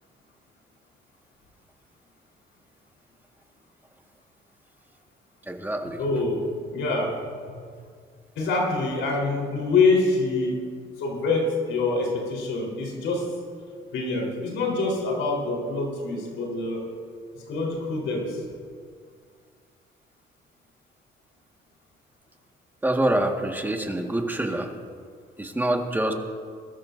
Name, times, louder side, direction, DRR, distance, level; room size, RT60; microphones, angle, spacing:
voice 1, 5.5-6.0 22.8-24.7 25.4-26.1, right 1 dB, 10° right, 2 dB, 1.7 m, -25 dB
voice 2, 6.0-7.1 7.5-7.6 8.4-10.6 11.0-13.3 13.9-16.8 17.3-18.4, left 3 dB, 85° left, -1 dB, 3.9 m, -25 dB
22.0 x 13.5 x 2.6 m, 2.1 s
cardioid pair, 90°, 20 cm